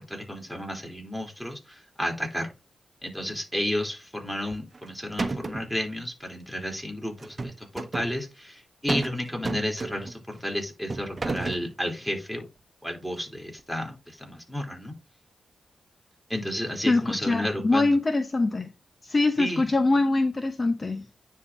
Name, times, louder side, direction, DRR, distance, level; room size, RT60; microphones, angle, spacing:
voice 1, 0.0-2.5 3.0-12.5 12.8-14.9 16.3-18.0 19.4-19.6, left 1 dB, 5° left, 3.5 m, -32 dB
sound 1, 4.5-4.9 5.2-5.7 7.2-8.1 8.9-9.2 9.5-10.2 10.9-11.7, right 3 dB, 45° right, 1.0 m, -31 dB
voice 2, 16.9-18.7 19.0-21.0, left 2 dB, 40° left, 0.8 m, -23 dB
9.6 x 3.7 x 3.9 m
supercardioid pair, 45°, 0 cm